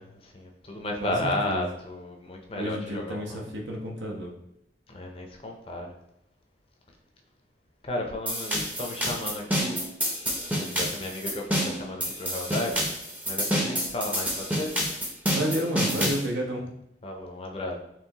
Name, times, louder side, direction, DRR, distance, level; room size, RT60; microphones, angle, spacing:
voice 1, 0.0-3.5 4.9-5.9 7.8-9.8 10.5-12.9 13.3-14.7 17.0-17.8, left 1 dB, 30° left, 2 dB, 0.6 m, -33 dB
voice 2, 0.8-1.7 2.5-4.3 15.3-16.7, equal, 80° right, 1 dB, 0.8 m, -31 dB
sound 1, 8.3-16.2, equal, 10° right, 0.6 m, -28 dB
4.5 x 3.0 x 2.8 m, 0.80 s
head